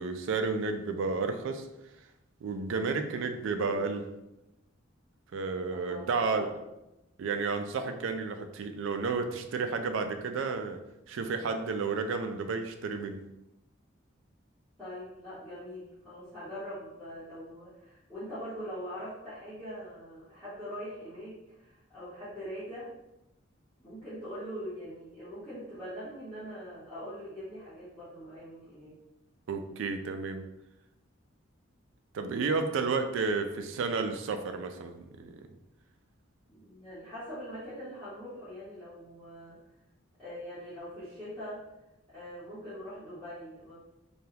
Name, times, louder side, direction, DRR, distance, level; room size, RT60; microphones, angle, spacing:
voice 1, 0.0-1.7 2.4-4.1 5.3-6.5 7.2-10.8 11.1-13.2 29.5-30.4 32.1-35.3, right 4 dB, 75° right, 7 dB, 0.3 m, -31 dB
voice 2, 5.7-6.6 14.8-22.9 23.8-29.0 36.5-39.6 40.2-41.6 42.1-43.8, equal, 5° left, -16 dB, 1.0 m, -42 dB
3.4 x 2.2 x 2.7 m, 0.93 s
head